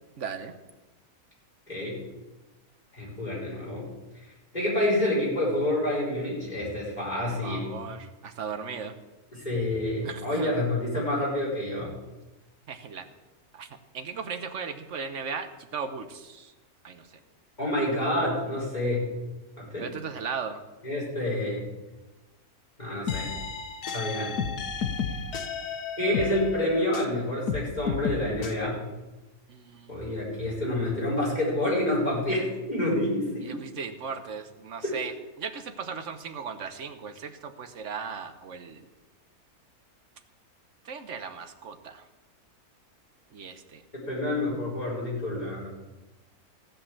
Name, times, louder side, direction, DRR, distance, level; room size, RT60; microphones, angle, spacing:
voice 1, 0.2-0.5 7.1-8.9 10.0-10.6 12.7-13.1 13.5-13.7 13.9-16.5 16.8-17.2 19.8-20.6 29.5-30.1 33.4-38.8 40.8-42.0 43.3-43.8, right 6 dB, 55° right, 9 dB, 1.2 m, -37 dB
voice 2, 1.7-2.0 2.9-3.8 4.5-7.7 9.3-11.9 17.6-19.0 19.6-19.9 20.8-21.6 22.8-23.3 23.9-24.4 26.0-28.8 29.9-33.6 34.8-34.9 44.1-45.7, left 1 dB, 25° left, -6 dB, 5.1 m, -28 dB
sound 1, 23.1-27.1 27.5-28.5, left 6 dB, 85° left, 1.5 m, -32 dB
15.5 x 5.4 x 8.6 m, 1.1 s
omnidirectional pair, 1.6 m